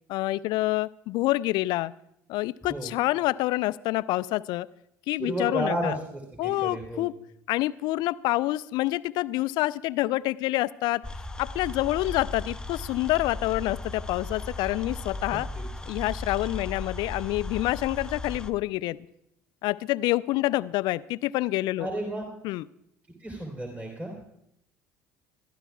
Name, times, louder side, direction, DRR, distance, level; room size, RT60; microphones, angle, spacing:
voice 1, 0.1-1.9 2.3-4.7 5.1-6.0 6.4-7.1 7.5-11.0 11.4-15.5 15.9-19.0 19.6-21.9 22.4-22.6, left 18 dB, 55° left, 19 dB, 0.3 m, -27 dB
voice 2, 5.2-7.0 21.8-22.2 23.2-24.1, right 1 dB, 15° right, 0 dB, 3.0 m, -32 dB
sound 1, 11.0-18.5, left 2 dB, 10° left, 0.6 m, -36 dB
21.5 x 13.0 x 2.3 m, 0.78 s
figure-of-eight pair, 60°, 9 cm